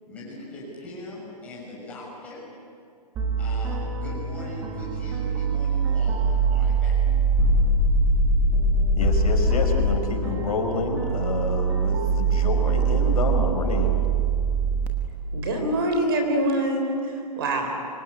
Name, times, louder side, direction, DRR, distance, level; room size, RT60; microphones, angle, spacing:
voice 1, 0.0-2.5 3.4-7.4, left 1 dB, 5° left, -6 dB, 6.5 m, -40 dB
sound 1, 3.2-14.9, right 7 dB, 10° right, 1.3 m, -24 dB
sound 2, 7.4-10.2, left 7 dB, 45° left, 1.3 m, -23 dB
voice 2, 9.0-14.0, left 3 dB, 60° left, 4 dB, 4.8 m, -28 dB
voice 3, 15.3-17.7, right 1 dB, 35° right, 3 dB, 3.9 m, -25 dB
25.5 x 23.0 x 9.9 m, 2.3 s
hypercardioid pair, 180°, 21 cm